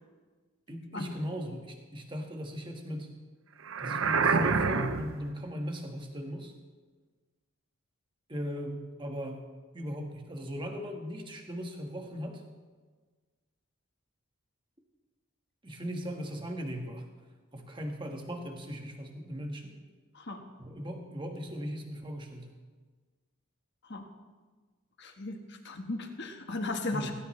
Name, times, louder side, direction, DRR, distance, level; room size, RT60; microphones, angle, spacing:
voice 1, 0.7-3.1 3.8-6.5 8.3-9.5 9.7-12.4 15.6-17.1 17.5-19.8 20.6-22.6 26.9-27.1, equal, 20° right, 3 dB, 1.4 m, -38 dB
sound 1, 3.7-5.3, right 4 dB, 60° right, 0.7 m, -27 dB
voice 2, 25.0-27.1, left 2 dB, 50° left, 5 dB, 1.4 m, -36 dB
17.5 x 16.5 x 3.2 m, 1.4 s
head